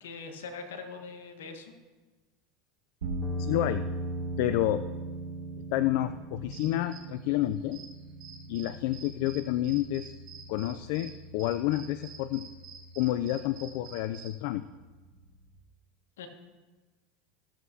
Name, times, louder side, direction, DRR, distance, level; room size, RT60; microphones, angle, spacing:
voice 1, 0.0-1.7 16.2-16.3, left 4 dB, 85° left, 5 dB, 1.4 m, -42 dB
sound 1, 3.0-15.5, right 1 dB, 90° right, 2.1 m, -40 dB
sound 2, 3.2-11.6, right 5 dB, 5° right, 1.5 m, -48 dB
voice 2, 3.4-3.8 4.4-4.8 5.7-7.8 8.5-10.1 10.5-12.5 13.0-14.7, left 14 dB, 65° left, 12 dB, 0.3 m, -29 dB
sound 3, 6.5-14.3, right 6 dB, 45° right, 2.6 m, -49 dB
16.0 x 7.2 x 2.8 m, 1.3 s
hypercardioid pair, 100°, 0 cm